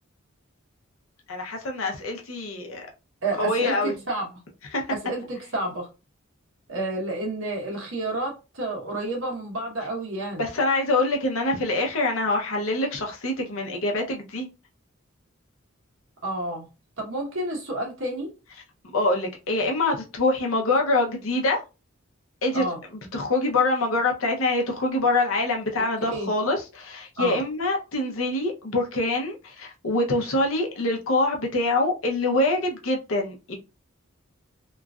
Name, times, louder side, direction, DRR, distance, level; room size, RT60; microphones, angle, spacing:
voice 1, 1.3-2.8 3.3-3.9 4.7-4.9 10.4-14.5 18.8-21.6 22.4-22.6 22.9-33.5, left 2 dB, 75° left, 0.7 m, -25 dB
voice 2, 3.2-3.8 4.1-4.3 5.0-5.9 6.7-10.4 16.2-16.6 17.0-18.3 22.5-22.8 26.1-26.3 27.2-27.4, right 2 dB, 70° right, 1.2 m, -30 dB
3.0 x 2.4 x 2.3 m
head